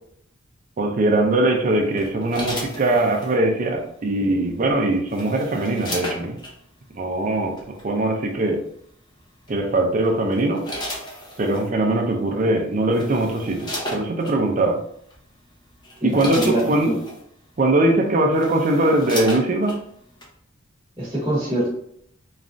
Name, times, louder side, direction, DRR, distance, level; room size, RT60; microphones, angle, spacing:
voice 1, 0.8-6.4 6.9-8.6 9.5-10.6 11.4-14.8 16.0-16.9 17.6-19.8, right 2 dB, 40° right, 3 dB, 0.5 m, -21 dB
sound 1, 2.0-3.3 4.7-6.5 7.6-7.8 9.5-9.8 10.3-11.7 12.5-12.6 12.9-14.4 15.1-15.3 15.7-17.2 17.9-18.0 18.3-19.8 20.2-20.3, equal, 25° left, 0.7 m, -33 dB
voice 2, 16.0-17.0 21.0-21.7, right 1 dB, 20° right, -7 dB, 1.1 m, -24 dB
3.1 x 2.4 x 2.5 m, 0.69 s
head